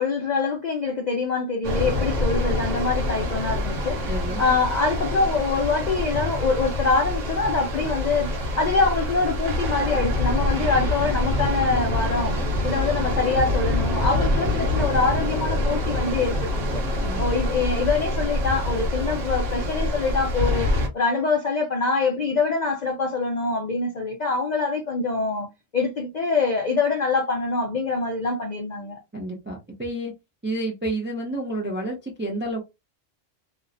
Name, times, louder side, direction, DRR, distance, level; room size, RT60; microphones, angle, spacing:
voice 1, 0.0-4.0 4.4-12.4 12.6-16.8 17.2-20.7 20.9-29.0, left 4 dB, 55° left, 0.5 m, -24 dB
sound 1, 1.6-20.9, left 1 dB, 75° right, 1.1 m, -25 dB
voice 2, 4.1-4.4 17.0-17.2 29.1-30.1 30.4-32.6, right 1 dB, 15° right, 0.3 m, -30 dB
Drum, 6.1-8.5, left 3 dB, 5° left, 0.9 m, -39 dB
3.0 x 2.0 x 2.4 m
omnidirectional pair, 1.3 m